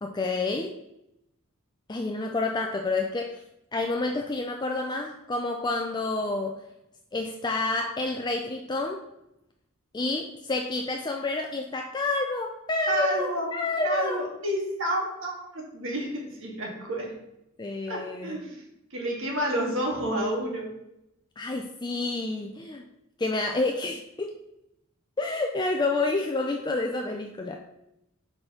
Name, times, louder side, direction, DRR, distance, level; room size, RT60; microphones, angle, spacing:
voice 1, 0.0-0.7 1.9-3.4 3.7-6.6 7.1-9.0 9.9-14.2 17.6-18.4 21.4-22.8 23.2-24.3 25.2-27.6, left 2 dB, 20° left, 3 dB, 0.4 m, -29 dB
voice 2, 12.9-13.5 13.8-17.1 17.9-18.6 18.9-20.7, right 1 dB, 65° right, -1 dB, 1.8 m, -30 dB
5.0 x 4.4 x 5.8 m, 0.84 s
head